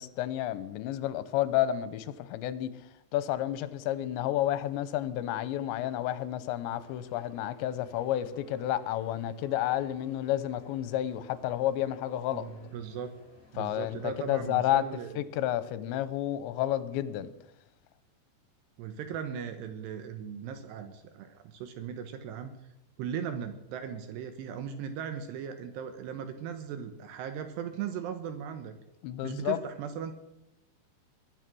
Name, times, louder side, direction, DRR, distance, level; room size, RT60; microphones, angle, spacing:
voice 1, 0.0-2.7 3.1-12.5 13.6-14.9 15.2-17.3 29.0-29.6, left 12 dB, 85° left, 3.2 m, -30 dB
sound 1, 6.6-14.3, left 4 dB, 55° left, 7.0 m, -58 dB
voice 2, 12.3-13.1 13.5-15.2 18.8-22.5 23.0-28.7 29.2-30.1, right 8 dB, 75° right, 3.1 m, -38 dB
22.5 x 9.9 x 6.2 m
omnidirectional pair, 5.1 m